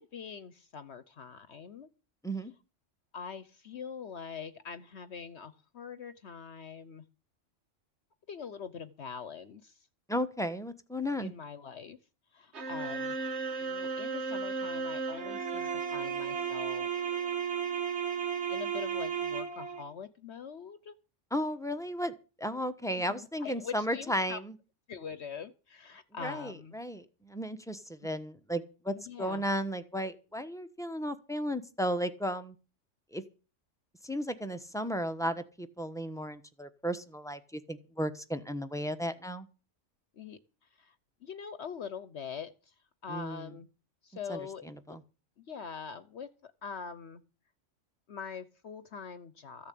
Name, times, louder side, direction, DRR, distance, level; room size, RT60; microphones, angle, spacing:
voice 1, 0.0-1.9 3.1-7.0 8.3-9.9 11.2-12.0 12.3-13.2 13.6-16.9 18.5-21.0 22.9-24.4 24.9-26.7 28.0-28.1 28.9-29.4 40.1-40.9 41.2-42.7 43.0-43.7 44.0-44.7 45.4-47.2 48.1-49.7, left 6 dB, 60° left, 14 dB, 1.1 m, -43 dB
voice 2, 10.1-11.3 21.3-24.5 26.2-32.5 33.1-33.2 34.0-39.5 43.1-43.5 44.3-44.4 44.6-45.0, equal, 5° left, 8 dB, 1.0 m, -34 dB
sound 1, 12.5-19.8, right 6 dB, 60° right, 1.7 m, -34 dB
14.5 x 7.0 x 8.5 m, 0.34 s
omnidirectional pair, 1.3 m